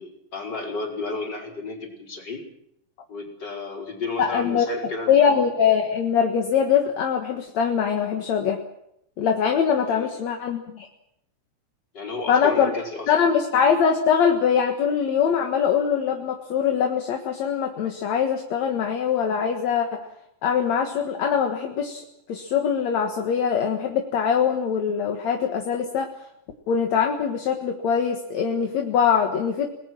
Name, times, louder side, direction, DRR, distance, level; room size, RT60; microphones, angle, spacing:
voice 1, 0.0-2.4 3.1-5.4 9.9-10.1 11.9-13.3, left 3 dB, 35° left, 0 dB, 5.2 m, -33 dB
voice 2, 4.2-4.7 5.1-8.6 9.2-10.9 12.3-12.7 13.1-20.1 20.4-22.0 22.3-26.1 26.7-29.7, left 7 dB, 65° left, 4 dB, 2.8 m, -22 dB
30.0 x 20.0 x 6.1 m, 0.78 s
omnidirectional pair, 3.6 m